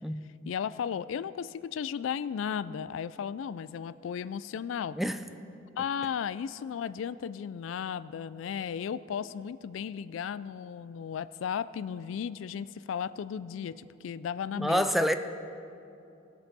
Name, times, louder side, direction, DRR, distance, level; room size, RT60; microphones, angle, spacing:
voice 1, 0.5-5.0 5.8-15.1, left 7 dB, 75° left, 16 dB, 0.3 m, -35 dB
voice 2, 14.5-15.2, equal, ahead, 9 dB, 0.4 m, -27 dB
19.5 x 7.9 x 4.1 m, 2.7 s
head